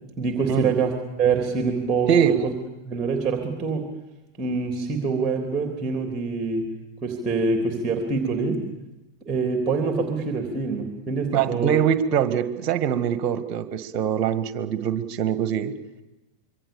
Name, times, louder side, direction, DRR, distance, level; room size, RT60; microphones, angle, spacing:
voice 1, 0.2-2.4 2.8-3.9 4.4-6.7 7.0-8.6 9.2-11.8, right 4 dB, 20° right, 4 dB, 3.4 m, -25 dB
voice 2, 2.1-2.5 11.3-15.7, right 8 dB, 40° right, 12 dB, 1.8 m, -23 dB
26.0 x 23.5 x 7.0 m, 1.0 s
figure-of-eight pair, 90°, 0 cm